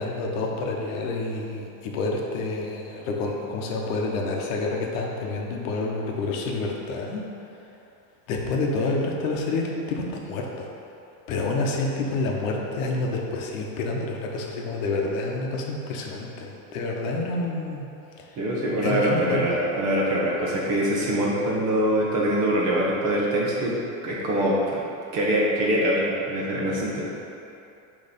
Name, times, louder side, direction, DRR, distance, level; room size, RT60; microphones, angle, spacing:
voice 1, 0.0-7.2 8.3-10.7 11.3-17.9 18.2-18.3 18.8-19.4, left 3 dB, 60° left, 0 dB, 0.9 m, -28 dB
voice 2, 18.4-23.8 24.0-24.8 25.1-27.0, right 1 dB, 35° right, -4 dB, 1.0 m, -24 dB
6.3 x 3.2 x 5.1 m, 2.8 s
cardioid pair, 175°, 44 cm